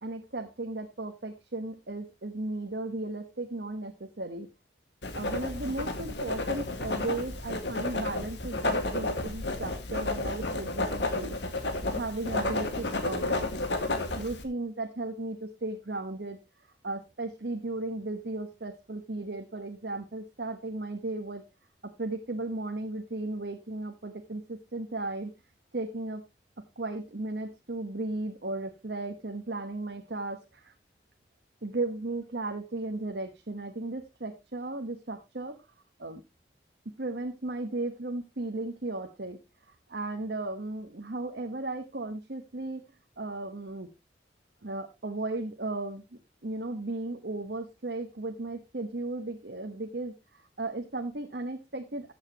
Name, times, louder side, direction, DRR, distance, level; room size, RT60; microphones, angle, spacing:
voice 1, 0.0-4.5 5.1-11.4 11.9-13.5 14.1-16.4 16.8-21.4 21.8-25.3 25.7-26.2 26.8-30.7 31.6-35.5 36.0-36.2 37.0-39.4 39.9-42.8 43.2-43.9 44.6-46.0 46.4-50.1 50.6-52.1, right 2 dB, 70° right, 4 dB, 1.2 m, -35 dB
Writing, 5.0-14.4, left 2 dB, 85° left, 1.9 m, -31 dB
14.0 x 8.2 x 2.9 m, 0.24 s
head